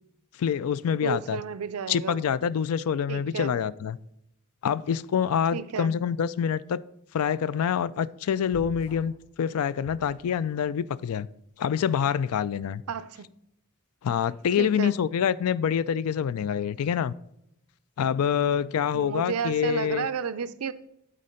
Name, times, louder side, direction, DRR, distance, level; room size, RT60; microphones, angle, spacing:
voice 1, 0.4-1.4 1.9-4.0 4.6-6.8 7.1-9.1 9.4-11.3 11.6-12.8 14.0-17.1 18.0-20.1, left 8 dB, 80° left, 0.3 m, -26 dB
voice 2, 0.9-2.2 3.1-3.5 5.5-5.9 12.9-13.3 14.6-15.0 18.9-20.7, right 6 dB, 80° right, 0.5 m, -32 dB
sound 1, 8.5-9.2 9.8-10.7, right 1 dB, 15° left, 2.8 m, -47 dB
8.4 x 3.8 x 5.1 m
head